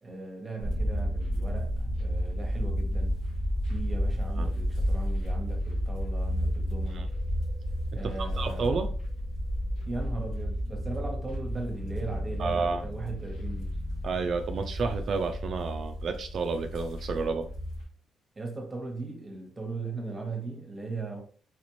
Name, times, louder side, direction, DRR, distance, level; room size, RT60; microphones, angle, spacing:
voice 1, 0.0-3.1 3.7-7.1 7.9-8.9 9.9-13.7 18.3-21.2, right 3 dB, 25° right, 1.0 m, -38 dB
sound 1, 0.6-17.8, equal, 90° left, 1.8 m, -31 dB
voice 2, 8.2-8.9 12.4-12.8 14.0-17.5, right 4 dB, 55° right, 0.4 m, -30 dB
4.0 x 2.5 x 3.0 m
cardioid pair, 90°, 0 cm